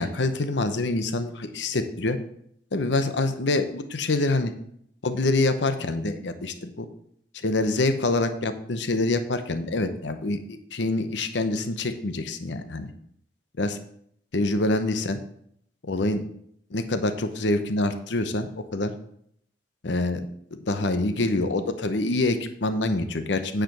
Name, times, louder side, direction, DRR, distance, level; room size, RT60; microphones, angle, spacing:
voice 1, 0.0-2.2 2.7-4.5 5.0-6.9 7.4-12.9 13.6-13.8 14.3-15.2 15.9-16.2 16.7-18.9 19.8-23.6, left 2 dB, 65° left, 9 dB, 0.8 m, -26 dB
9.1 x 5.0 x 5.8 m, 0.69 s
head